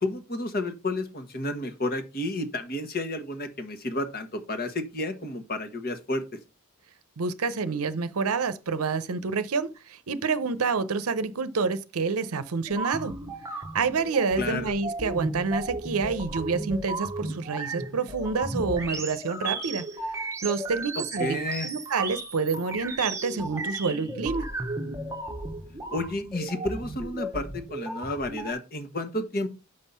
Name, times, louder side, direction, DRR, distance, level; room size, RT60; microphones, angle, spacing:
voice 1, 0.0-6.2 14.4-14.7 21.0-21.7 25.9-29.5, left 2 dB, 45° left, 1.2 m, -31 dB
voice 2, 7.2-13.1 13.7-19.8 20.1-24.5, right 4 dB, 80° right, 0.7 m, -28 dB
sound 1, 12.7-28.5, right 2 dB, 15° right, 0.9 m, -34 dB
6.7 x 5.5 x 5.5 m
head